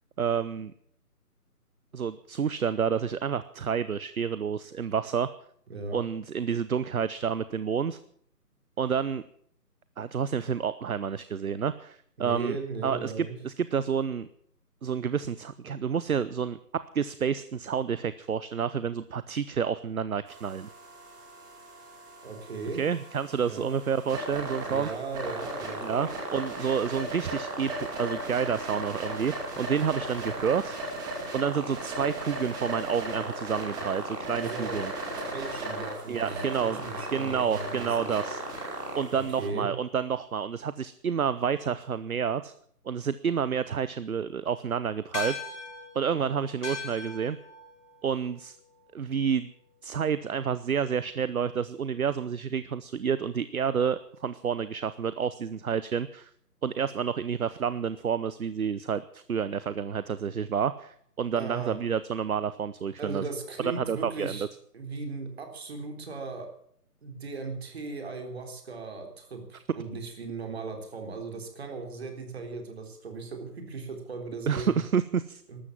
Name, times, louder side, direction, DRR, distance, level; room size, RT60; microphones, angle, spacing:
voice 1, 0.2-0.7 1.9-5.3 5.9-8.0 8.8-9.2 10.0-12.6 12.8-14.3 14.8-16.6 16.9-20.7 22.7-24.9 25.8-30.8 31.3-34.9 36.1-36.8 37.1-38.4 39.0-42.5 42.8-45.4 45.9-47.4 48.0-48.6 48.9-49.5 49.8-56.3 56.6-63.2 63.8-64.4 74.5-75.4, right 7 dB, 65° right, 15 dB, 0.8 m, -29 dB
voice 2, 5.7-6.0 12.2-13.4 22.2-22.8 23.5-23.7 24.6-26.1 34.4-34.8 35.2-38.2 39.1-39.7 61.3-61.8 63.0-64.5 64.7-66.5 67.0-74.8 75.5-75.6, right 4 dB, 40° right, 4 dB, 3.9 m, -37 dB
sound 1, 20.3-39.5, right 2 dB, 10° right, 2.5 m, -36 dB
sound 2, 45.1-49.8, left 4 dB, 45° left, 2.7 m, -40 dB
13.5 x 13.0 x 7.6 m, 0.64 s
figure-of-eight pair, 160°, 47 cm